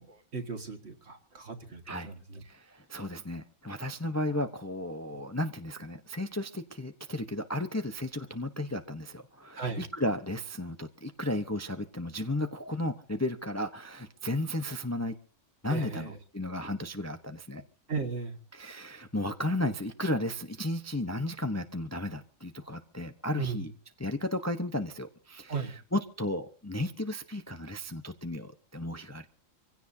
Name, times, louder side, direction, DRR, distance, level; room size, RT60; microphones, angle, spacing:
voice 1, 0.0-2.4 9.6-9.8 15.7-16.2 17.9-18.4 23.4-23.6 25.5-25.7, right 5 dB, 50° right, 6 dB, 1.9 m, -36 dB
voice 2, 2.4-15.1 15.6-17.6 18.5-23.7 24.0-29.3, left 1 dB, 15° left, 7 dB, 0.8 m, -34 dB
25.5 x 16.5 x 2.8 m, 0.36 s
omnidirectional pair, 1.4 m